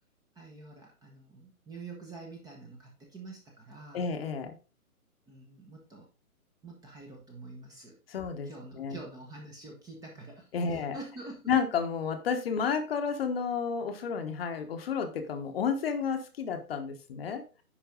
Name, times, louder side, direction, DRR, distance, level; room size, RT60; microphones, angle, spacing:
voice 1, 0.3-4.0 5.3-6.1 6.6-8.0 8.4-11.5, right 3 dB, 10° right, 0 dB, 1.0 m, -47 dB
voice 2, 3.9-4.6 8.1-8.5 8.8-9.0 10.5-11.0 11.5-17.6, left 6 dB, 40° left, 6 dB, 1.2 m, -31 dB
10.0 x 4.5 x 3.8 m, 0.34 s
figure-of-eight pair, 135°, 44 cm